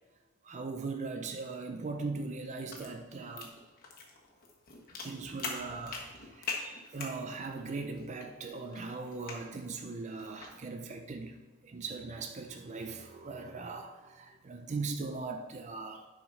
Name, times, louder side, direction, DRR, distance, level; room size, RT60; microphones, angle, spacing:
voice 1, 0.4-3.5 5.0-11.3 11.6-16.1, right 4 dB, 30° right, 5 dB, 0.4 m, -39 dB
sound 1, 2.2-10.6, left 4 dB, 40° left, 1.3 m, -44 dB
10.0 x 4.8 x 4.1 m, 1.2 s
head